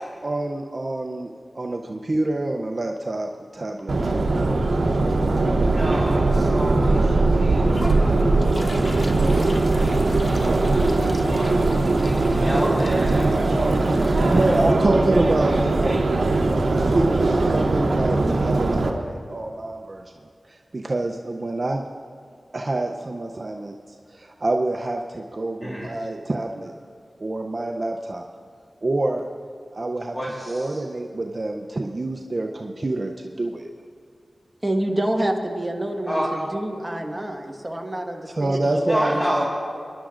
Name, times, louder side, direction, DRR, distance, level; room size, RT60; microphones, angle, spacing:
voice 1, 0.2-4.2 13.0-13.1 14.0-16.3 16.6-20.1 20.5-21.8 22.5-23.7 24.1-26.7 27.2-28.3 28.8-29.3 29.7-30.2 30.5-33.7 34.9-35.0 38.2-39.4, right 2 dB, 50° right, 2 dB, 0.6 m, -27 dB
Subway metro underground, 3.9-18.9, right 2 dB, 85° right, 0.9 m, -20 dB
voice 2, 5.5-14.5 15.2-16.0 25.6-25.9 30.1-30.8 36.1-36.3 38.8-39.5, equal, 20° left, -4 dB, 1.7 m, -31 dB
sound 1, 6.3-6.5 7.0-7.1 7.7-14.7, left 1 dB, 40° left, 1.0 m, -38 dB
voice 3, 34.6-36.2 36.5-39.0, right 1 dB, 15° right, 2 dB, 1.5 m, -27 dB
23.5 x 11.5 x 2.5 m, 2.2 s
cardioid pair, 45°, 0 cm